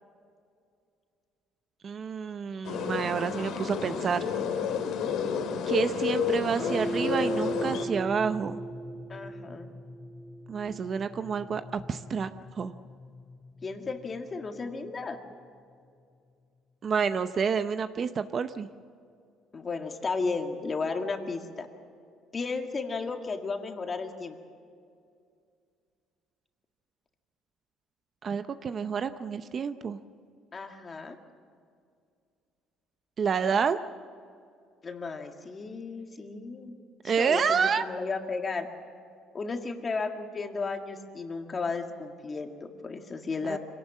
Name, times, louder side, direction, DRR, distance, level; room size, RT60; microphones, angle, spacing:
voice 1, 1.8-4.2 5.7-8.6 10.5-12.3 12.6-12.7 16.8-18.7 28.2-30.0 33.2-33.8 37.0-37.8 43.4-43.6, right 6 dB, 35° right, 10 dB, 0.7 m, -28 dB
sound 1, 2.6-7.9, left 7 dB, 70° left, 2.4 m, -31 dB
sound 2, 6.6-15.0, right 1 dB, 10° left, 0.9 m, -38 dB
voice 2, 9.1-9.7 13.6-15.2 19.5-21.7 22.3-24.4 30.5-31.2 34.8-36.7 37.0-38.7 39.3-43.6, left 4 dB, 25° left, 4 dB, 1.9 m, -34 dB
25.5 x 18.0 x 7.5 m, 2.3 s
cardioid pair, 145°, 0 cm